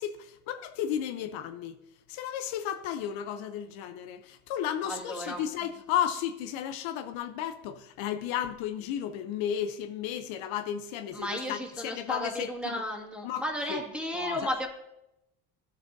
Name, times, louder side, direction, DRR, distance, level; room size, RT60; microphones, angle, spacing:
voice 1, 0.0-1.8 2.1-12.8 13.2-13.8 14.1-14.4, left 10 dB, 70° left, 0.7 m, -33 dB
voice 2, 4.8-5.4 11.1-14.7, equal, ahead, 1.9 m, -34 dB
12.0 x 7.4 x 2.6 m
supercardioid pair, 90°, 49 cm